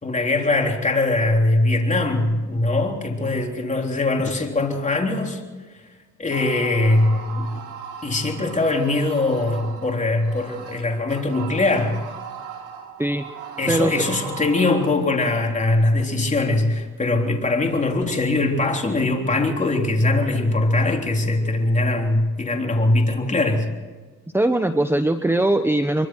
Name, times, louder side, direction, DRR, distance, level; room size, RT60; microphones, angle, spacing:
voice 1, 0.0-5.4 6.2-7.5 8.0-12.0 13.6-23.7, left 2 dB, 25° left, 1 dB, 3.6 m, -21 dB
sound 1, 6.3-14.9, right 7 dB, 85° right, 4.5 m, -38 dB
voice 2, 13.7-14.1 24.3-26.1, right 1 dB, 10° right, 8 dB, 0.9 m, -20 dB
24.5 x 23.5 x 4.7 m, 1.4 s
cardioid pair, 90°, 30 cm